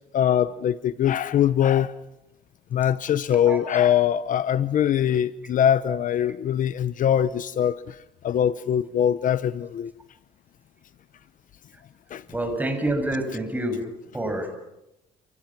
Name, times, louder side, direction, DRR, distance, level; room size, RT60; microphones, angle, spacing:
voice 1, 0.1-1.9 2.7-7.9 8.2-9.9 12.1-12.2, left 10 dB, 50° left, 0.8 m, -22 dB
voice 2, 12.3-13.8 14.1-14.5, right 1 dB, 10° right, 7.0 m, -27 dB
29.0 x 27.5 x 6.0 m
cardioid pair, 110°, 17 cm